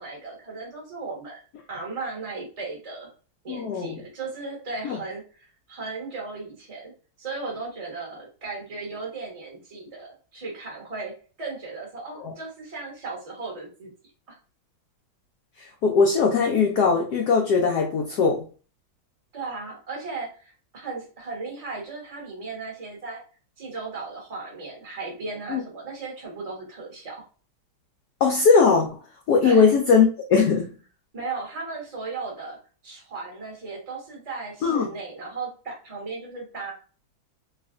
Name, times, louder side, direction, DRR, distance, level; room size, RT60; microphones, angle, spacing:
voice 1, 0.0-1.4 1.7-3.1 3.4-6.9 7.2-11.1 11.4-13.9 14.3-14.4 19.3-23.2 23.6-27.2 29.4-29.7 31.1-32.6 32.8-36.7, right 3 dB, 35° right, -2 dB, 0.6 m, -36 dB
voice 2, 3.5-4.0 4.8-5.0 12.2-12.3 15.6-18.4 25.5-25.6 28.2-29.0 29.3-30.7 34.6-34.9, left 5 dB, 85° left, 1 dB, 0.8 m, -20 dB
3.2 x 2.4 x 2.4 m, 0.38 s
omnidirectional pair, 2.3 m